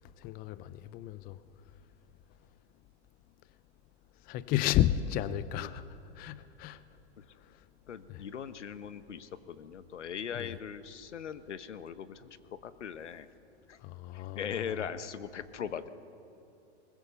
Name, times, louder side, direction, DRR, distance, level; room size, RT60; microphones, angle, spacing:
voice 1, 0.2-1.4 4.3-5.8 6.2-6.8 8.1-8.2 10.3-10.5 13.8-14.9, left 12 dB, 25° left, 0.5 m, -32 dB
voice 2, 7.9-13.3 13.7-13.8 14.1-15.9, left 7 dB, 85° left, 1.2 m, -40 dB
21.5 x 21.0 x 7.0 m
hypercardioid pair, 120°, 35 cm